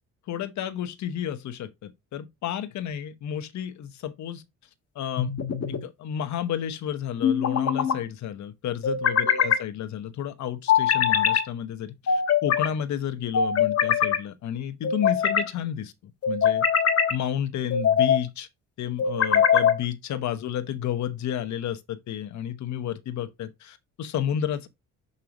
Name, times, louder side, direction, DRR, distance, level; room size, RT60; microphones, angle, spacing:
voice 1, 0.3-4.4 4.9-5.3 5.7-16.7 17.1-18.5 18.8-24.7, left 9 dB, 70° left, 1.0 m, -31 dB
sound 1, 5.2-5.8 7.2-8.0 8.8-9.6 10.7-11.4 12.1-12.7 13.3-14.2 14.8-15.5 16.2-17.1 17.7-18.2 19.0-19.8, left 7 dB, 55° left, 1.3 m, -22 dB
6.3 x 5.5 x 2.9 m
cardioid pair, 90°, 30 cm